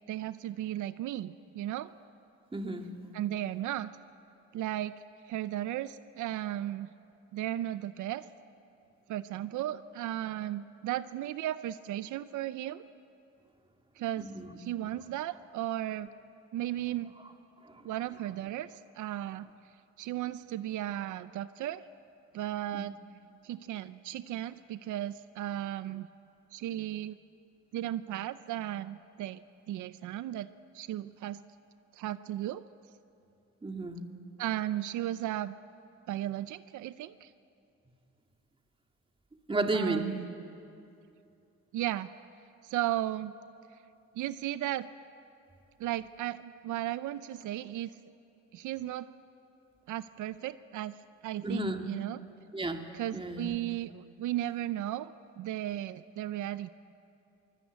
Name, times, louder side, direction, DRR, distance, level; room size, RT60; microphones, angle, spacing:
voice 1, 0.1-1.9 3.1-3.9 4.5-6.9 7.3-8.3 9.1-12.8 14.0-14.3 14.6-16.1 16.5-17.1 17.8-19.5 20.0-21.8 22.3-23.0 23.4-26.1 26.5-27.2 27.7-29.4 29.7-30.5 30.7-31.4 31.9-32.7 34.4-35.5 36.1-37.3 39.7-40.3 41.7-42.1 42.6-43.3 44.1-44.9 45.8-47.9 48.5-49.1 49.9-52.2 52.9-56.7, right 13 dB, 80° right, 14 dB, 0.6 m, -35 dB
voice 2, 2.5-2.9 14.2-14.5 17.6-17.9 22.7-22.8 33.6-34.0 39.5-40.1 51.4-51.8 52.5-52.8 53.1-53.6, right 2 dB, 15° right, 4 dB, 2.1 m, -33 dB
24.0 x 18.5 x 8.2 m, 2.7 s
cardioid pair, 90°, 30 cm